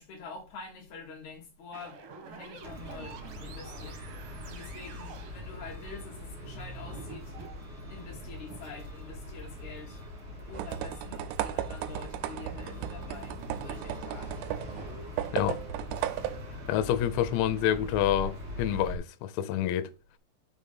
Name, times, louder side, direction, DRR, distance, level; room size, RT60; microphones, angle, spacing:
voice 1, 0.0-2.0 2.3-4.0 4.4-7.3 7.9-10.0 10.5-14.5, left 5 dB, 65° left, 2.0 m, -46 dB
sound 1, 1.7-5.4 6.3-7.6 8.0-8.1 8.5-8.7 9.2-9.4 11.8-12.2 14.8-15.1, right 5 dB, 60° right, 2.6 m, -48 dB
sound 2, 2.6-19.0, left 1 dB, 40° right, 2.9 m, -42 dB
sound 3, 10.5-16.7, right 13 dB, 85° right, 2.8 m, -36 dB
voice 2, 16.7-19.9, left 11 dB, 80° left, 2.8 m, -28 dB
6.0 x 5.3 x 5.4 m
omnidirectional pair, 5.2 m